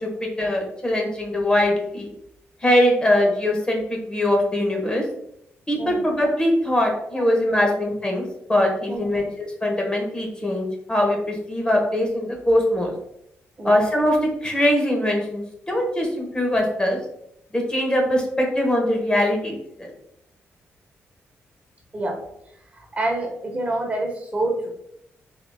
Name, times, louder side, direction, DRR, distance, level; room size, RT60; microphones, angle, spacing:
voice 1, 0.0-2.1 2.6-5.0 5.7-8.2 8.5-12.9 13.6-17.0 17.5-19.9, left 1 dB, 20° left, 0 dB, 1.0 m, -22 dB
voice 2, 8.9-9.2 13.6-13.7 21.9-22.1 22.8-24.7, right 2 dB, 30° right, 0 dB, 1.1 m, -27 dB
4.0 x 2.8 x 3.4 m, 0.76 s
cardioid pair, 90°, 5 cm